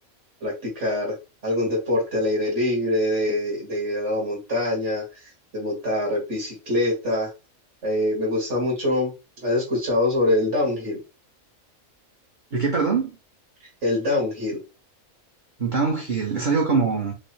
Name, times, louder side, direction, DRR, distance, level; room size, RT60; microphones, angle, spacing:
voice 1, 0.4-1.2 1.4-5.0 5.5-7.3 7.8-9.1 9.4-11.0 13.8-14.6, left 1 dB, 60° right, 2.2 m, -24 dB
voice 2, 12.5-13.1 15.6-17.1, right 4 dB, 40° right, 0.9 m, -23 dB
5.2 x 2.1 x 3.3 m
omnidirectional pair, 1.4 m